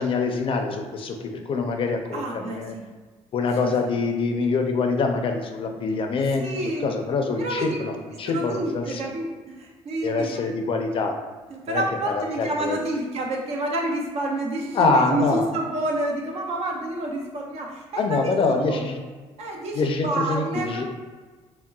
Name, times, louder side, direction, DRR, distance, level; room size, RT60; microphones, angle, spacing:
voice 1, 0.0-2.8 3.3-9.1 10.0-11.1 11.7-12.8 14.7-15.5 18.0-19.0 19.7-20.8, left 4 dB, 50° left, 5 dB, 0.4 m, -25 dB
voice 2, 2.1-2.8 3.6-3.9 6.4-6.9 7.4-7.8 8.2-10.4 11.5-18.8 19.4-20.8, right 1 dB, 65° right, 0 dB, 0.6 m, -29 dB
3.7 x 2.1 x 2.3 m, 1.4 s
cardioid pair, 80°, 12 cm